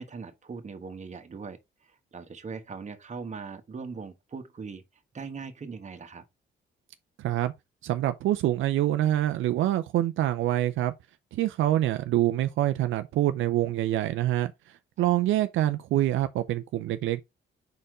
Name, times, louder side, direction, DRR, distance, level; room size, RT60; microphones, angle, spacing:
voice 1, 0.0-4.8 5.1-6.2, right 5 dB, 35° right, 1.5 m, -40 dB
voice 2, 7.2-7.5 7.8-10.9 11.3-14.5 15.0-17.2, right 13 dB, 80° right, 0.6 m, -25 dB
5.2 x 4.4 x 4.8 m
cardioid pair, 90°, 20 cm